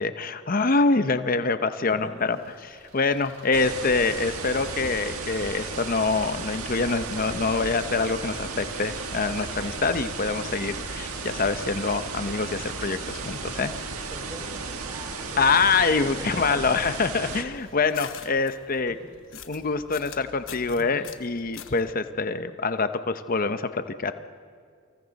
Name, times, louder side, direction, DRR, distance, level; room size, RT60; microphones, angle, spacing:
voice 1, 0.0-2.4 2.9-13.7 15.4-18.9 19.5-24.1, left 4 dB, 40° left, 10 dB, 0.7 m, -25 dB
voice 2, 1.9-2.3 3.5-3.8 14.1-16.6 18.4-18.9 20.6-20.9, equal, 15° right, 0 dB, 3.8 m, -42 dB
Engine, 2.2-14.8, right 2 dB, 45° right, 6.8 m, -50 dB
sound 1, 3.5-17.4, right 4 dB, 85° right, 1.7 m, -34 dB
sound 2, 16.6-21.9, left 8 dB, 65° left, 1.0 m, -45 dB
28.5 x 25.5 x 4.1 m, 2.1 s
head